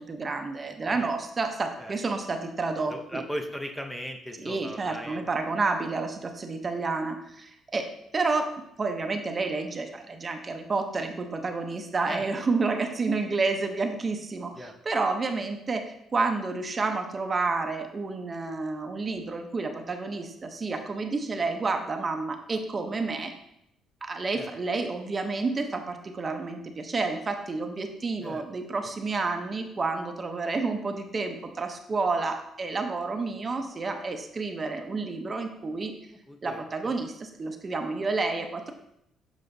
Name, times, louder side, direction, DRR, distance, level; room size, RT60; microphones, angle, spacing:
voice 1, 0.0-3.2 4.4-8.5 8.8-23.3 24.0-35.9 36.4-37.1 37.4-38.7, right 3 dB, 30° right, 5 dB, 0.6 m, -30 dB
voice 2, 2.8-5.2 12.1-12.3 14.6-14.8 24.3-24.5 28.2-28.5 36.3-36.9, equal, 5° left, 4 dB, 0.6 m, -38 dB
7.5 x 4.8 x 2.6 m, 0.78 s
cardioid pair, 105°, 0 cm